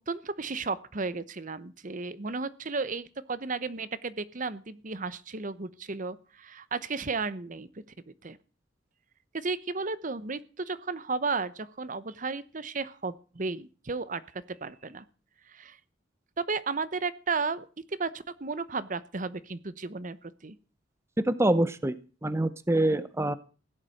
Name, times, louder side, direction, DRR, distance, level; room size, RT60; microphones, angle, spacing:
voice 1, 0.1-7.7 8.1-8.4 9.3-15.0 15.5-15.8 16.4-17.7 18.0-20.6, right 4 dB, 45° right, 16 dB, 0.9 m, -34 dB
voice 2, 21.2-21.9 22.2-23.4, right 1 dB, 15° right, 14 dB, 0.7 m, -25 dB
16.5 x 11.0 x 6.4 m, 0.37 s
head